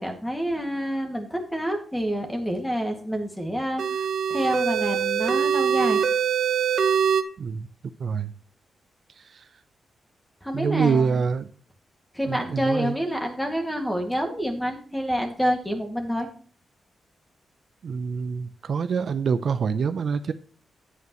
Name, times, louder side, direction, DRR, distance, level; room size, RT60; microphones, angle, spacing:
voice 1, 0.0-6.0 10.4-11.2 12.1-16.3, equal, 5° left, 3 dB, 2.1 m, -28 dB
sound 1, 3.8-7.2, right 7 dB, 75° right, 1.0 m, -23 dB
voice 2, 8.0-8.3 9.2-9.5 10.5-11.5 12.2-13.0 17.8-20.3, right 6 dB, 55° right, 10 dB, 0.6 m, -26 dB
11.0 x 9.2 x 3.1 m, 0.43 s
wide cardioid pair, 125°, 0 cm